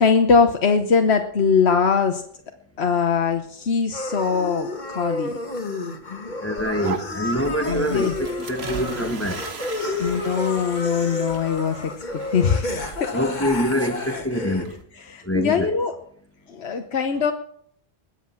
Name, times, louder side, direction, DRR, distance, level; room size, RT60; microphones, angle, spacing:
voice 1, 0.0-2.2 2.8-5.3 7.7-8.1 10.0-12.0 12.3-12.7 13.0-13.1 15.1-15.9 16.5-17.3, left 5 dB, 90° left, 1.3 m, -21 dB
sound 1, 3.9-14.7, left 2 dB, 45° left, 1.8 m, -31 dB
voice 2, 6.4-9.4 13.1-14.7 15.2-15.8, equal, 15° left, 1.2 m, -25 dB
sound 2, 6.6-14.8, right 5 dB, 80° right, 1.6 m, -37 dB
21.0 x 8.2 x 7.2 m
omnidirectional pair, 1.1 m